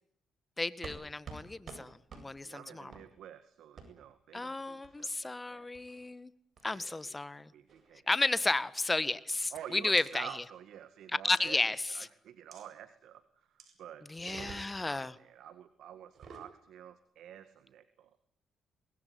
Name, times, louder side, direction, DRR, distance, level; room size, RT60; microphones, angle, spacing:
voice 1, 0.6-2.9 4.3-6.3 6.6-7.5 8.1-10.3 11.2-11.8 14.1-15.1, left 2 dB, 20° left, 16 dB, 1.7 m, -33 dB
sound 1, 0.8-1.0 1.3-1.4 1.7-1.8 2.1-2.2 2.9-3.1 3.8-3.9 4.8-5.2 5.7-6.1 6.6-6.9 7.7-8.0 8.8-8.9 9.3-9.4 10.0-10.1 11.3-11.5 12.5-12.6 13.6-13.7 14.2-14.9 16.0-16.5, right 5 dB, 55° right, 7.9 m, -49 dB
voice 2, 2.4-5.7 6.7-7.2 7.5-8.1 9.5-18.2, right 10 dB, 75° right, 12 dB, 2.0 m, -49 dB
24.5 x 20.5 x 9.7 m, 0.66 s
cardioid pair, 90°, 0 cm